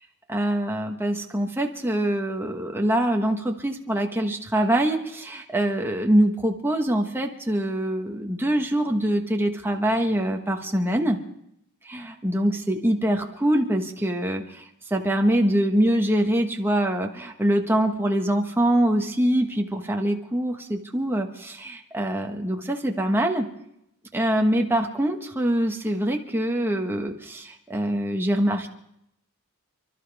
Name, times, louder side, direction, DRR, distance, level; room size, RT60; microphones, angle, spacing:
voice 1, 0.3-11.2 11.9-14.4 14.9-23.5 24.1-28.7, right 1 dB, 10° right, 2 dB, 1.3 m, -24 dB
30.0 x 12.0 x 3.5 m, 0.76 s
head